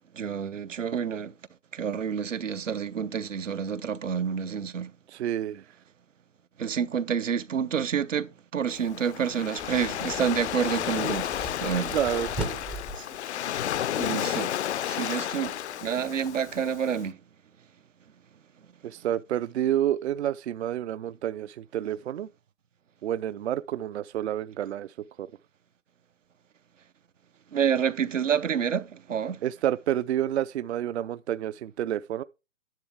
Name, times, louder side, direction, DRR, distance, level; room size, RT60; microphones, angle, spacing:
voice 1, 0.1-1.3 1.7-4.9 6.6-12.0 13.0-13.2 13.9-14.6 14.9-17.2 27.5-29.4, right 7 dB, 90° right, 0.8 m, -29 dB
voice 2, 5.1-5.6 11.9-12.6 18.8-22.3 23.0-24.9 25.2-25.3 29.4-32.2, right 11 dB, 65° right, 0.5 m, -29 dB
Waves surf, 8.7-16.9, left 11 dB, 65° left, 0.5 m, -32 dB
sound 1, 9.6-13.0, right 1 dB, 5° right, 0.4 m, -39 dB
10.5 x 7.1 x 3.5 m
hypercardioid pair, 140°, 37 cm